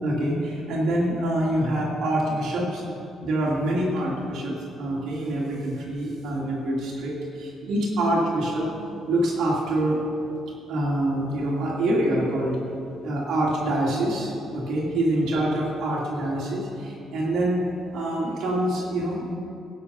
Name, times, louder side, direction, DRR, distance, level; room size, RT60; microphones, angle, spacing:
voice 1, 0.0-2.8 3.2-8.7 9.1-10.0 10.7-12.6 13.0-17.6 17.9-19.2, right 1 dB, 65° right, -4 dB, 2.8 m, -25 dB
18.0 x 7.6 x 5.6 m, 2.7 s
cardioid pair, 155°, 0 cm